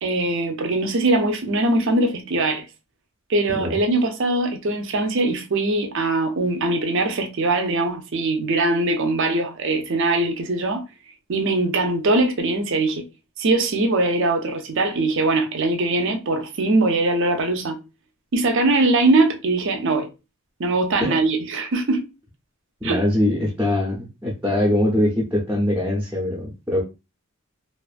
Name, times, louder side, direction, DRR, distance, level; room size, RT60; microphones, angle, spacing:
voice 1, 0.0-2.7 3.3-10.8 11.3-13.0 13.4-17.8 18.3-20.1 20.6-22.1 22.8-23.0, right 2 dB, 55° right, 0.5 m, -21 dB
voice 2, 22.8-26.8, left 1 dB, 10° right, 0.5 m, -22 dB
2.5 x 2.3 x 2.4 m
head